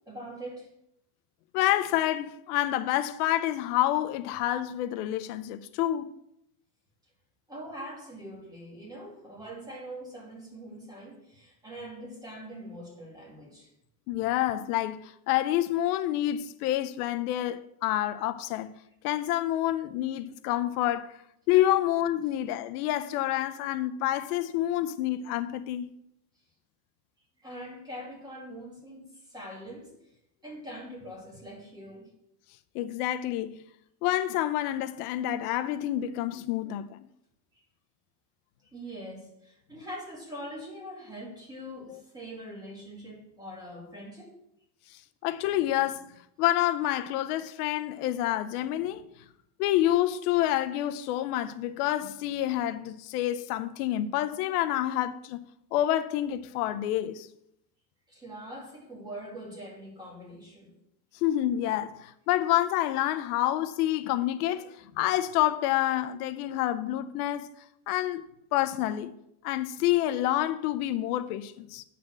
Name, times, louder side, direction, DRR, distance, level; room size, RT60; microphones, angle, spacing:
voice 1, 0.1-0.7 7.5-13.7 27.4-29.9 30.4-32.1 37.5-37.6 38.7-44.3 58.1-60.7, equal, 10° right, 2.2 m, -43 dB
voice 2, 1.5-6.1 14.1-18.7 19.0-21.1 21.5-25.9 32.7-33.6 34.0-37.1 45.2-46.1 46.4-49.0 49.6-55.4 55.7-57.3 61.1-67.5 67.9-68.2 68.5-69.1 69.4-71.8, left 13 dB, 80° left, 0.6 m, -28 dB
8.6 x 4.2 x 6.2 m
cardioid pair, 160°, 45 cm